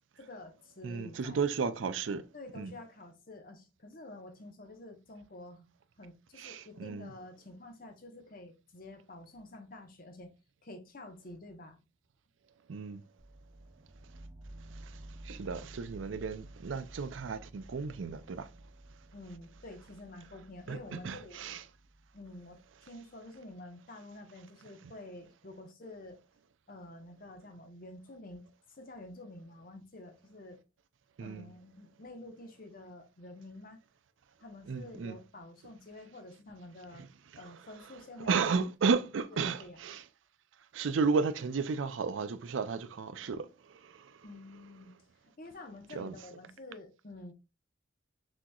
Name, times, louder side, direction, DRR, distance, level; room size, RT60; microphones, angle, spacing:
voice 1, 0.2-1.4 2.3-5.7 6.0-10.3 10.6-11.8 19.1-21.4 22.1-26.2 26.7-28.4 28.7-30.6 31.2-33.8 34.4-37.0 37.3-38.6 39.3-39.8 44.2-44.9 45.4-47.3, left 2 dB, 50° left, 1.0 m, -49 dB
voice 2, 0.8-2.3 2.6-2.7 6.4-7.1 12.7-13.0 15.3-18.5 20.7-21.6 31.2-31.5 34.7-35.2 38.2-40.0 40.7-43.5 45.9-46.1, right 5 dB, 85° right, 0.5 m, -33 dB
sound 1, 13.2-23.0, right 1 dB, 30° right, 0.4 m, -52 dB
6.1 x 2.9 x 2.3 m
head